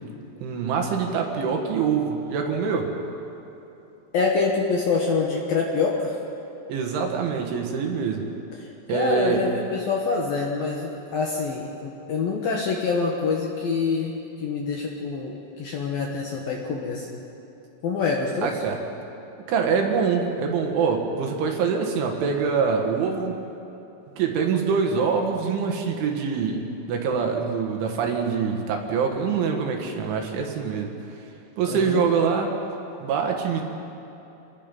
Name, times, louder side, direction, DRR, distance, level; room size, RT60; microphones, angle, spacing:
voice 1, 0.4-2.9 6.7-8.2 8.9-9.4 18.4-18.8 19.5-23.4 24.2-26.6 26.9-30.9 31.6-32.5 33.0-33.6, right 6 dB, 70° right, 2 dB, 3.9 m, -24 dB
voice 2, 4.1-6.1 8.6-17.2 17.8-18.6 31.7-32.0, left 4 dB, 65° left, -1 dB, 2.5 m, -26 dB
27.5 x 20.0 x 5.5 m, 2.9 s
omnidirectional pair, 6.0 m